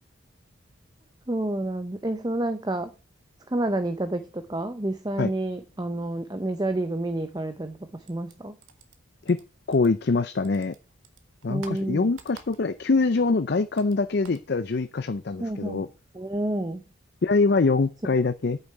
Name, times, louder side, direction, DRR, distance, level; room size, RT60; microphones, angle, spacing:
voice 1, 1.3-2.9 3.5-8.6 11.5-12.1 15.4-15.8 16.1-16.8, right 1 dB, 20° right, 0.6 m, -29 dB
sound 1, 8.0-10.2 10.4-12.9 13.2-14.5, right 5 dB, 80° right, 1.6 m, -51 dB
voice 2, 9.7-10.7 11.4-15.9 17.2-18.6, left 3 dB, 50° left, 0.5 m, -24 dB
8.8 x 6.6 x 4.7 m
head